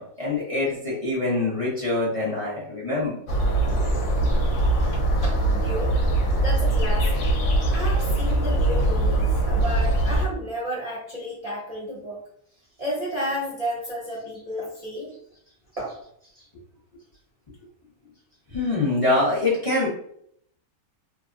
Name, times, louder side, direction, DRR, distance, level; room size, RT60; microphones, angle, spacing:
voice 1, 0.0-3.3 18.5-19.9, left 2 dB, 30° left, -7 dB, 0.8 m, -25 dB
sound 1, 3.3-10.3, right 1 dB, 65° left, 0.9 m, -22 dB
voice 2, 4.9-5.9 6.3-7.3 7.7-12.2 12.8-15.1 15.8-15.9, equal, 35° right, -7 dB, 0.7 m, -32 dB
3.2 x 2.1 x 2.5 m, 0.68 s
omnidirectional pair, 1.5 m